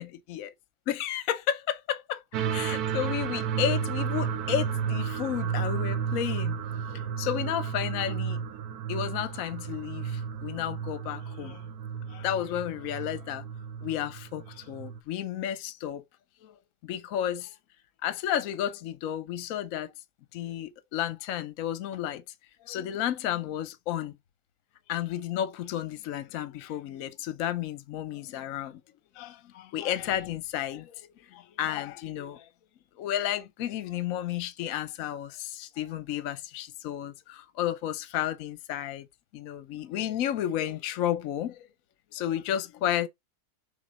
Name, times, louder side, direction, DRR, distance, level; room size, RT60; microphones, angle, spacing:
voice 1, 0.0-0.5 0.9-6.6 6.9-8.4 8.9-11.6 12.1-13.4 13.8-16.0 16.4-16.6 16.8-17.5 18.0-19.9 20.3-22.2 22.7-24.1 24.9-28.8 29.2-32.5 33.0-39.1 39.3-41.7 42.1-43.1, left 11 dB, 60° left, 1.0 m, -32 dB
sound 1, 2.3-15.0, right 7 dB, 70° right, 1.2 m, -32 dB
6.4 x 3.7 x 4.0 m
omnidirectional pair, 1.8 m